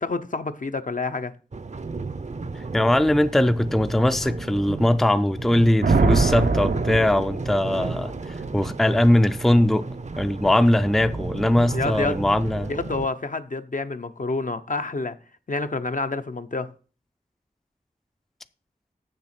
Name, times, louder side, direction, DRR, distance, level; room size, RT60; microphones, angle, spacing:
voice 1, 0.0-1.3 11.7-12.2 12.7-15.2 15.5-16.7, left 3 dB, 60° left, 0.7 m, -28 dB
sound 1, 1.5-13.1, right 3 dB, 50° right, 0.6 m, -34 dB
voice 2, 2.7-9.9 10.2-12.7, left 1 dB, ahead, 0.4 m, -20 dB
Thunder, 5.8-8.0, right 3 dB, 80° right, 0.8 m, -22 dB
7.2 x 6.8 x 5.9 m
wide cardioid pair, 65°, 16 cm